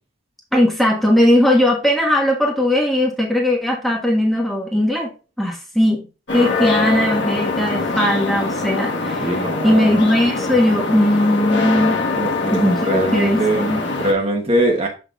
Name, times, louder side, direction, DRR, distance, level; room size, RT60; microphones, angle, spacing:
voice 1, 0.5-5.1 5.4-6.0 6.3-9.3 9.6-12.0 12.5-13.9, left 1 dB, ahead, 1.5 m, -18 dB
sound 1, 6.3-14.1, left 3 dB, 60° left, 1.5 m, -23 dB
voice 2, 9.2-10.0 12.2-13.7 14.0-14.9, right 1 dB, 30° right, 1.2 m, -21 dB
7.7 x 6.1 x 2.4 m
head